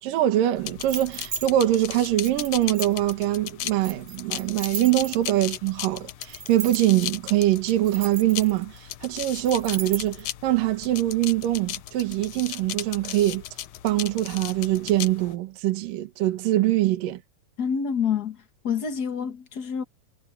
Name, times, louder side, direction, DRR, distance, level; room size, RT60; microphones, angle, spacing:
voice 1, 0.0-13.4 13.8-17.2, right 14 dB, 70° right, 3.0 m, -23 dB
sound 1, 0.6-15.3, left 13 dB, 85° left, 1.5 m, -37 dB
sound 2, 0.8-1.5 2.2-3.1 3.8-5.4 6.2-7.1 7.7-8.8 9.5-10.2, right 7 dB, 55° right, 1.5 m, -36 dB
voice 2, 17.6-18.4 18.6-19.8, left 7 dB, 55° left, 1.1 m, -27 dB
omnidirectional pair, 4.2 m